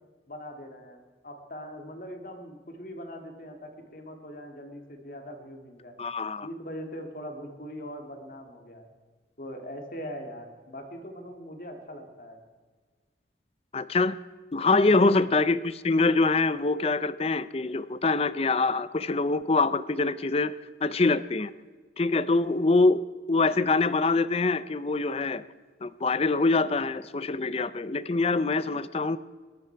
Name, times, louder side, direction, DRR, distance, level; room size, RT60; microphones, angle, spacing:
voice 1, 0.3-5.9 6.4-8.9 9.4-12.4 14.8-15.1, equal, 50° left, 5 dB, 2.3 m, -41 dB
voice 2, 6.0-6.5 13.7-14.2 14.5-20.5 20.8-21.5 22.0-23.0 23.3-25.4 25.8-29.2, left 3 dB, 35° left, 16 dB, 0.5 m, -24 dB
21.5 x 13.5 x 4.6 m, 1.5 s
head